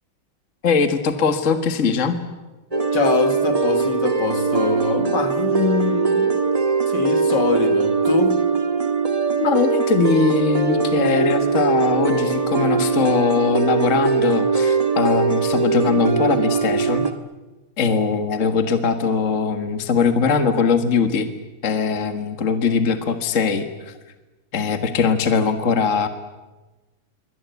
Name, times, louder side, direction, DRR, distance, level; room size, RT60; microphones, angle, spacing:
voice 1, 0.6-2.2 9.4-17.1 17.8-21.3 21.6-23.9 24.5-26.1, left 5 dB, 40° left, 1.9 m, -21 dB
sound 1, 2.7-17.1, right 5 dB, 20° right, 1.3 m, -21 dB
voice 2, 2.9-6.5 6.9-8.4, left 4 dB, 55° left, 2.5 m, -23 dB
27.0 x 24.5 x 8.3 m
omnidirectional pair, 2.3 m